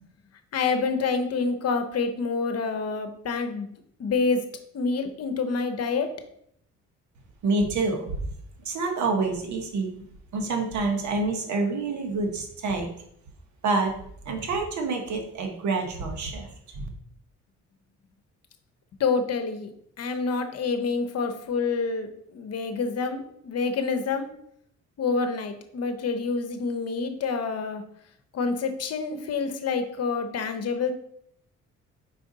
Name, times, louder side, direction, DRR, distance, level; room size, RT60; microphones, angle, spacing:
voice 1, 0.5-3.7 4.0-4.4 4.7-6.1 19.0-19.7 20.0-24.3 25.0-27.8 28.3-30.9, left 4 dB, 55° left, 8 dB, 0.9 m, -27 dB
voice 2, 7.4-8.2 8.6-9.9 10.3-12.9 13.6-13.9 14.2-16.9, right 3 dB, 70° right, 3 dB, 1.3 m, -27 dB
5.0 x 4.6 x 4.0 m, 0.70 s
cardioid pair, 90°, 30 cm